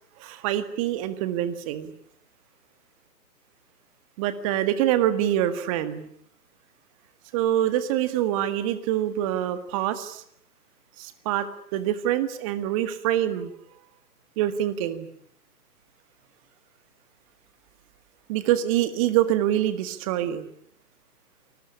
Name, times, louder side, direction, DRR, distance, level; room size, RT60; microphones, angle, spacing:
voice 1, 0.2-1.9 4.2-6.1 7.3-10.2 11.0-11.5 11.7-13.5 14.4-15.1 18.3-20.5, right 12 dB, 20° right, 12 dB, 1.8 m, -25 dB
28.5 x 20.5 x 9.8 m, 0.69 s
figure-of-eight pair, 145°, 49 cm